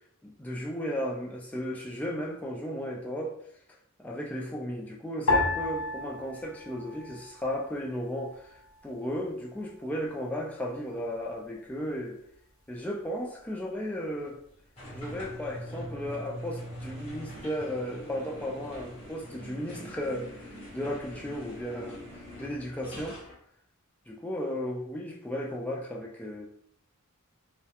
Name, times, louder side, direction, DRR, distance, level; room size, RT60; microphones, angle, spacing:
voice 1, 0.2-3.4 4.0-8.6 8.8-12.2 12.7-14.4 14.9-22.0 22.4-23.2 24.1-26.5, equal, 5° left, -2 dB, 0.3 m, -35 dB
sound 1, 5.3-7.8 8.1-9.0 9.6-10.0, left 2 dB, 75° left, 0.6 m, -32 dB
sound 2, 14.8-23.3, equal, 25° left, 0.8 m, -43 dB
2.3 x 2.1 x 2.7 m, 0.69 s
head